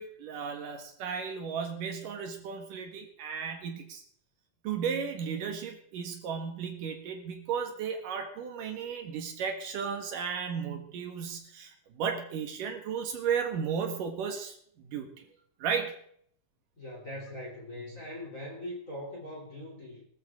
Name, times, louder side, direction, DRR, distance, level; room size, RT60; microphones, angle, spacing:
voice 1, 0.0-4.0 4.6-15.2 15.6-15.9, right 6 dB, 75° right, 5 dB, 3.1 m, -34 dB
voice 2, 16.8-20.1, left 1 dB, 25° left, -2 dB, 3.3 m, -41 dB
19.5 x 13.5 x 3.7 m, 0.64 s
omnidirectional pair, 3.9 m